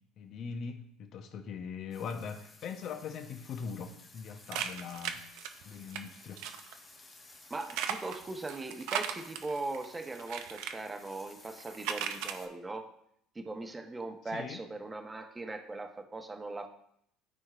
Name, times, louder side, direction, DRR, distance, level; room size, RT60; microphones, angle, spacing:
voice 1, 0.2-5.2 5.6-6.4 14.3-14.6, left 6 dB, 55° left, 7 dB, 0.8 m, -41 dB
sound 1, 1.9-12.5, left 3 dB, 30° left, 1.3 m, -56 dB
sound 2, 4.5-6.0 6.4-6.7 7.5-10.7 11.5-12.4, right 9 dB, 70° right, 0.6 m, -36 dB
voice 2, 7.5-12.9 13.3-16.7, right 2 dB, 20° right, 5 dB, 1.0 m, -40 dB
13.0 x 4.4 x 2.5 m, 0.72 s
hypercardioid pair, 80°, 0 cm